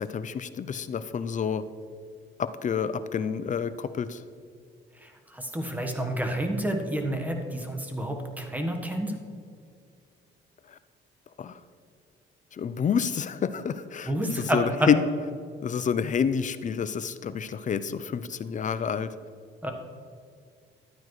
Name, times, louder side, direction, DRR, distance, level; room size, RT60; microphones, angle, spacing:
voice 1, 0.0-1.6 2.4-4.2 11.4-11.6 12.6-15.1 15.6-19.1, left 7 dB, 40° left, 13 dB, 0.5 m, -28 dB
voice 2, 5.0-9.1 14.1-14.9 19.6-19.7, right 1 dB, 10° right, 3 dB, 1.3 m, -29 dB
12.0 x 9.1 x 3.2 m, 2.2 s
cardioid pair, 90°, 20 cm